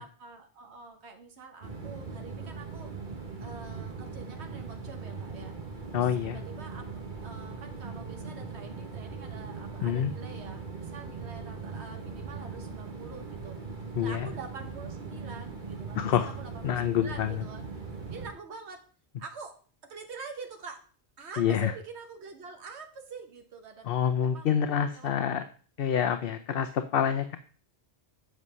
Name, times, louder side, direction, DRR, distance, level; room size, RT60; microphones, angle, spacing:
voice 1, 0.0-2.9 3.4-5.6 5.9-13.6 14.0-17.6 18.1-18.9 19.2-20.8 21.2-24.5 24.9-25.2, right 4 dB, 75° right, 4 dB, 1.4 m, -46 dB
sound 1, 1.6-18.3, right 4 dB, 45° right, 1.6 m, -40 dB
voice 2, 5.9-6.4 9.8-10.1 14.0-14.3 16.0-16.4 16.6-17.4 21.4-21.7 23.8-25.5 25.8-27.4, left 9 dB, 60° left, 9 dB, 0.8 m, -27 dB
8.2 x 6.2 x 5.5 m, 0.42 s
omnidirectional pair, 1.1 m